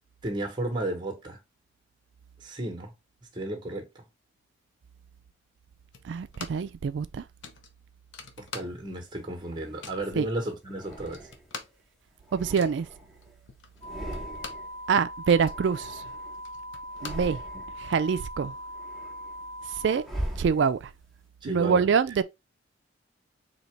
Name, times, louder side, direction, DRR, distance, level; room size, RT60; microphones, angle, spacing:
voice 1, 0.2-1.4 2.4-2.9 3.3-4.0 8.4-11.3 21.4-21.9, right 1 dB, 25° right, 1.0 m, -33 dB
sound 1, 5.9-6.8 7.0-7.1 7.4-9.1 9.4-10.1 10.6-10.7 10.9-14.8 15.1-17.8, left 5 dB, 75° left, 0.7 m, -45 dB
voice 2, 6.1-7.2 10.2-10.3 12.3-12.9 14.9-15.9 17.0-17.4 17.8-18.5 19.8-20.0 20.4-20.8 21.4-22.2, right 6 dB, 65° right, 0.3 m, -25 dB
sound 2, 8.8-10.0 10.7-11.7 12.1-13.4 13.7-14.8 15.1-16.4 16.8-17.9 18.3-21.1, right 1 dB, ahead, 1.0 m, -41 dB
sound 3, 13.8-20.0, equal, 35° left, 1.9 m, -40 dB
4.0 x 2.9 x 3.2 m
head